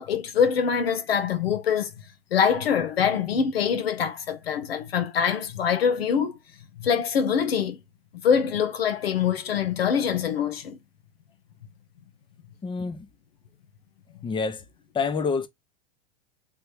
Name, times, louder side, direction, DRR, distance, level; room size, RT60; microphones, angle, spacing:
voice 1, 0.0-1.9 2.3-6.4 6.8-7.8 8.2-10.8, left 7 dB, 75° left, 0.8 m, -24 dB
voice 2, 12.6-13.1 14.2-14.6 14.9-15.5, left 5 dB, 15° left, 0.8 m, -27 dB
3.5 x 3.1 x 4.7 m
figure-of-eight pair, 85°, 30 cm